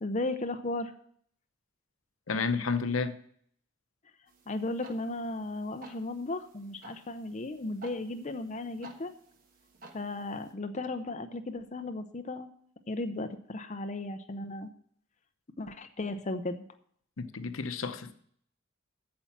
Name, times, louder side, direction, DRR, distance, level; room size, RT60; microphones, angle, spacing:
voice 1, 0.0-0.9 4.5-9.1 9.9-12.5 12.9-14.7 15.6-16.6, left 2 dB, 35° left, 7 dB, 0.6 m, -35 dB
voice 2, 2.3-3.2 17.2-18.1, left 4 dB, 90° left, 10 dB, 0.8 m, -31 dB
sound 1, 4.3-10.5, right 3 dB, 45° right, 1.3 m, -54 dB
8.7 x 7.0 x 7.2 m, 0.63 s
head